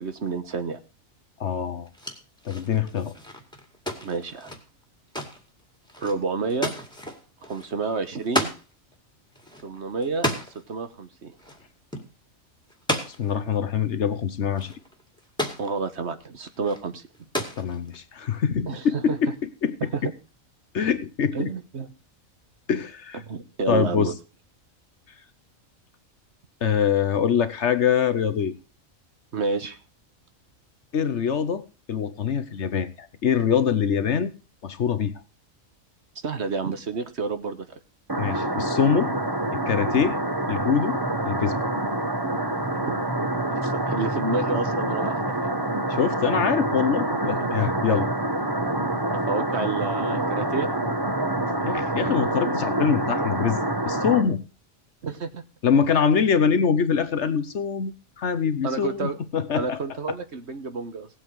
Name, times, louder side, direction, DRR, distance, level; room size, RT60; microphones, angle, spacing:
voice 1, 0.0-0.8 4.0-4.5 6.0-6.7 7.4-8.5 9.6-11.3 15.6-17.0 18.7-19.2 19.9-20.0 21.3-21.9 23.2-24.1 29.3-29.8 36.2-37.7 42.7-43.0 43.5-45.5 47.2-47.5 49.1-50.7 55.0-55.4 58.6-59.2 59.6-61.1, right 4 dB, 55° right, 10 dB, 1.5 m, -30 dB
voice 2, 1.4-1.9 2.4-3.1 13.1-14.7 17.6-19.8 20.7-21.5 22.7-23.2 23.7-24.1 26.6-28.5 30.9-34.3 34.6-35.1 38.2-39.1 39.5-40.2 40.5-41.0 41.3-41.7 45.9-48.1 51.6-53.6 53.8-54.4 55.6-59.8, left 7 dB, 60° left, 12 dB, 1.2 m, -24 dB
sound 1, 1.9-8.6 8.9-9.0 9.3-10.7 11.4-11.7 11.9-12.1 12.7-13.4 14.2-14.3 14.5-15.7 16.4-16.8 17.1-18.0, equal, 5° left, 2.2 m, -32 dB
sound 2, 38.1-54.2, right 1 dB, 15° right, 1.4 m, -26 dB
18.0 x 8.0 x 4.7 m, 0.32 s
omnidirectional pair, 1.4 m